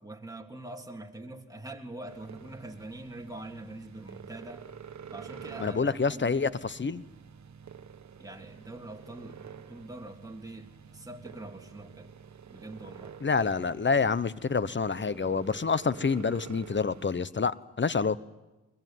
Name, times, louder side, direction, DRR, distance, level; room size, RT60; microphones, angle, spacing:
voice 1, 0.0-4.6 5.1-6.6 8.2-12.1 12.5-13.2, right 2 dB, 10° right, 2 dB, 3.4 m, -44 dB
sound 1, 2.1-17.2, right 7 dB, 65° right, 1.3 m, -48 dB
voice 2, 5.6-7.0 13.2-18.2, left 5 dB, 40° left, 17 dB, 1.0 m, -27 dB
22.0 x 22.0 x 9.4 m, 1.1 s
cardioid pair, 55°, 30 cm